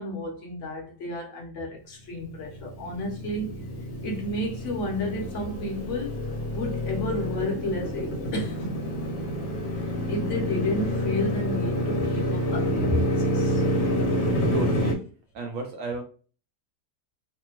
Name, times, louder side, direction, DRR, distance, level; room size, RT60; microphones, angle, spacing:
voice 1, 0.0-3.6 4.0-6.2 6.5-8.8 9.8-13.6, left 1 dB, 55° left, 1.0 m, -31 dB
Motorcycle, 2.3-15.0, equal, 80° left, 1.4 m, -28 dB
voice 2, 14.5-15.0 15.3-16.0, right 2 dB, 65° right, 0.8 m, -32 dB
3.3 x 2.1 x 3.0 m
omnidirectional pair, 1.9 m